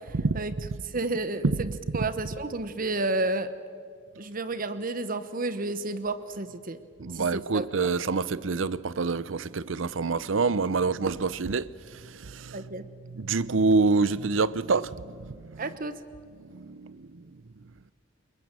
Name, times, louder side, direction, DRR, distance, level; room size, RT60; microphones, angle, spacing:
voice 1, 0.9-3.5 4.2-6.8 7.1-7.9 12.5-12.8 15.6-16.0, right 2 dB, 45° right, 1.2 m, -31 dB
voice 2, 7.0-12.7 13.0-15.7 16.4-17.2, right 4 dB, 90° right, 0.7 m, -27 dB
28.0 x 22.0 x 7.6 m
head